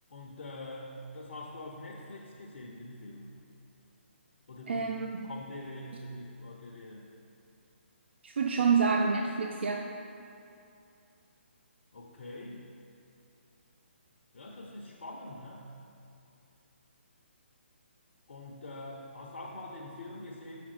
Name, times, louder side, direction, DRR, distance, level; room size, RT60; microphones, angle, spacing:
voice 1, 0.1-3.3 4.5-7.1 11.9-12.7 14.3-15.7 18.3-20.6, left 1 dB, 65° left, -3 dB, 0.6 m, -44 dB
voice 2, 4.7-5.3 8.2-9.9, right 5 dB, 65° right, 2 dB, 0.4 m, -28 dB
5.8 x 3.6 x 4.7 m, 2.7 s
figure-of-eight pair, 135°, 7 cm